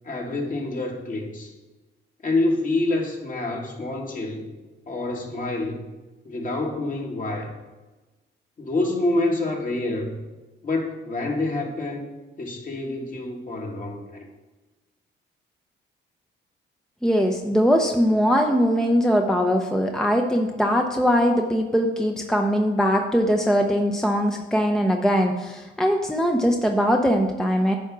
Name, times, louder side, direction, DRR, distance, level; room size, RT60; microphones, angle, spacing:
voice 1, 0.0-1.5 2.2-4.5 4.9-5.8 6.3-7.5 8.6-10.1 10.6-12.0 12.4-14.3, left 2 dB, 40° left, 0 dB, 1.8 m, -27 dB
voice 2, 17.0-27.8, equal, 5° left, 3 dB, 0.7 m, -21 dB
10.0 x 3.6 x 6.0 m, 1.2 s
cardioid pair, 90°, 20 cm